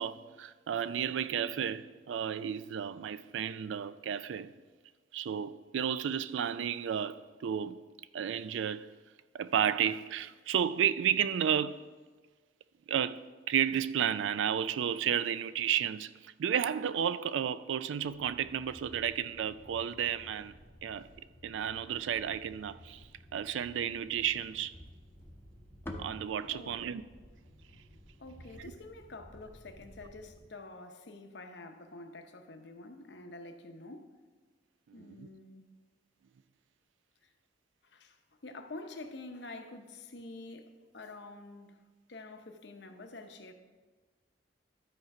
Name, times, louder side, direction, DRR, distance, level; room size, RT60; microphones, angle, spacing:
voice 1, 0.0-4.5 5.1-7.8 8.1-8.9 9.3-11.9 12.9-20.6 20.8-21.1 21.4-23.0 23.3-24.7 26.0-27.0 34.9-35.3, right 9 dB, 80° right, 0.3 m, -32 dB
sound 1, 18.0-30.5, equal, 50° right, 1.2 m, -56 dB
sound 2, 24.7-29.0, left 1 dB, 10° left, 0.7 m, -49 dB
voice 2, 26.4-26.9 28.2-34.1 34.9-35.7 37.2-37.3 37.8-41.8 42.1-43.5, left 2 dB, 65° left, 0.8 m, -48 dB
12.0 x 4.4 x 4.8 m
head